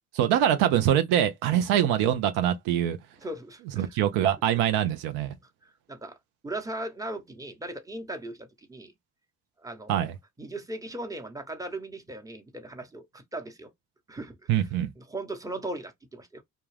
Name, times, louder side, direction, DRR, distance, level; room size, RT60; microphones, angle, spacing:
voice 1, 0.1-3.0 3.8-5.4 9.9-10.1 14.5-14.9, right 10 dB, 75° right, 0.6 m, -24 dB
voice 2, 3.2-3.9 5.4-6.2 6.4-8.9 9.6-10.1 10.4-13.7 14.1-14.5 15.0-16.4, right 1 dB, 10° right, 0.8 m, -38 dB
2.3 x 2.1 x 3.2 m
hypercardioid pair, 45°, 39 cm